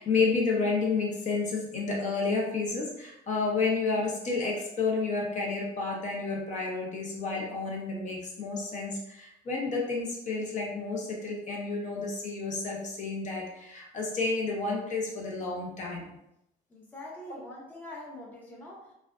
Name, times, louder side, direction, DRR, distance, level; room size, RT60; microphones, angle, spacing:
voice 1, 0.0-16.1, left 4 dB, 45° left, -1 dB, 0.7 m, -30 dB
voice 2, 16.7-18.9, left 1 dB, 10° left, -4 dB, 0.6 m, -44 dB
2.4 x 2.2 x 2.3 m, 0.82 s
cardioid pair, 110°, 17 cm